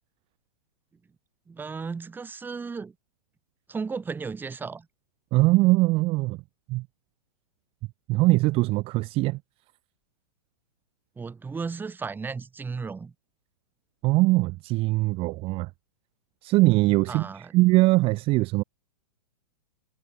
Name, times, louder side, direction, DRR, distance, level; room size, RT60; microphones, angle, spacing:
voice 1, 1.5-2.9 3.7-4.9 11.2-13.1 17.1-17.5, right 5 dB, 10° right, 1.1 m, -34 dB
voice 2, 5.3-6.4 6.7-6.8 8.1-9.4 14.0-15.7 16.4-18.6, right 21 dB, 30° right, 0.6 m, -22 dB
figure-of-eight pair, 105°, 20 cm